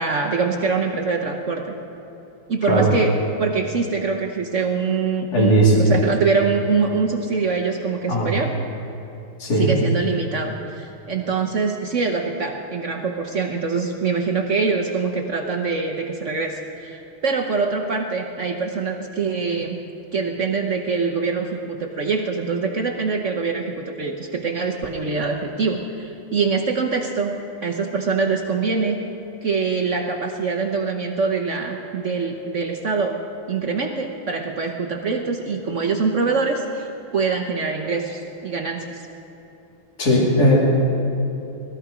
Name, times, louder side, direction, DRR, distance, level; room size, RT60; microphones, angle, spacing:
voice 1, 0.0-1.7 2.5-8.5 9.6-19.8 20.1-29.0 29.4-33.2 33.5-36.9 37.1-39.1, right 4 dB, 55° right, 1 dB, 0.8 m, -24 dB
voice 2, 5.3-5.9 8.1-8.3 9.4-9.7 40.0-40.6, right 1 dB, 45° left, -4 dB, 3.0 m, -17 dB
20.5 x 14.0 x 5.0 m, 2.9 s
omnidirectional pair, 2.4 m